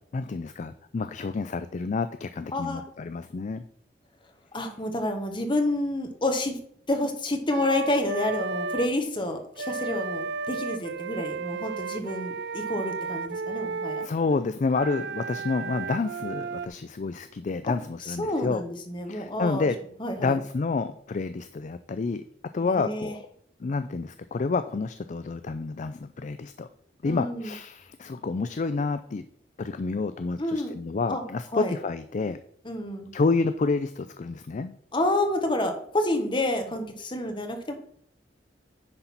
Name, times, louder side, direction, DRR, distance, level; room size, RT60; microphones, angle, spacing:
voice 1, 0.1-3.6 14.0-18.6 19.1-19.8 20.2-22.2 22.5-23.2 23.6-26.7 27.0-29.2 29.6-32.4 33.1-34.7, left 4 dB, 45° left, 11 dB, 0.4 m, -29 dB
voice 2, 2.5-2.8 4.5-6.6 6.9-14.0 18.0-19.7 20.0-20.4 22.6-23.1 27.0-27.5 30.4-30.8 31.1-31.2 31.5-31.7 32.6-33.1 34.9-37.7, left 1 dB, 30° left, 5 dB, 1.3 m, -29 dB
Wind instrument woodwind instrument, 7.5-8.9 9.6-14.1 14.7-16.7, right 4 dB, 70° right, 0.5 m, -33 dB
9.8 x 4.0 x 5.9 m, 0.64 s
head